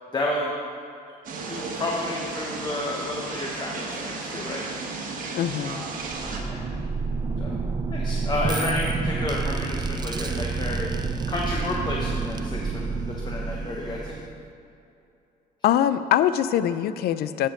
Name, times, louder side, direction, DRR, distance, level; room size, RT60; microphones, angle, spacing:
voice 1, 0.1-0.5 1.4-4.6 6.5-6.7 7.4-7.5 7.9-14.2, left 2 dB, 25° left, -2 dB, 0.9 m, -31 dB
sound 1, 1.2-6.4, right 3 dB, 55° right, 1.3 m, -34 dB
voice 2, 5.3-5.8 15.6-17.5, left 11 dB, 70° left, 13 dB, 0.4 m, -23 dB
sound 2, 6.0-14.5, right 4 dB, 25° right, 0.5 m, -29 dB
14.5 x 5.3 x 3.7 m, 2.7 s
cardioid pair, 110°, 17 cm